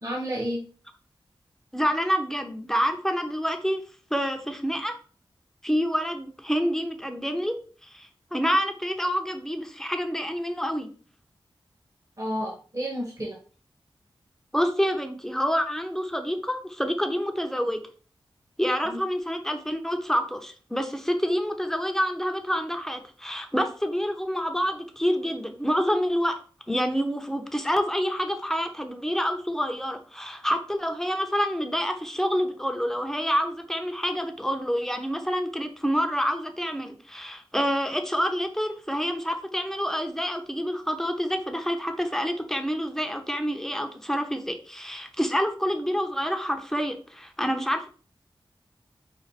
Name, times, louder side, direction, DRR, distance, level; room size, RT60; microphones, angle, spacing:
voice 1, 0.0-0.6 12.2-13.4 18.8-19.0, equal, 35° right, -1 dB, 1.1 m, -31 dB
voice 2, 1.7-3.8 4.1-4.9 5.6-7.5 7.8-10.9 14.5-17.8 18.6-26.3 26.7-47.9, equal, 5° left, 5 dB, 0.7 m, -27 dB
5.1 x 2.5 x 4.1 m, 0.39 s
wide cardioid pair, 95°, 9 cm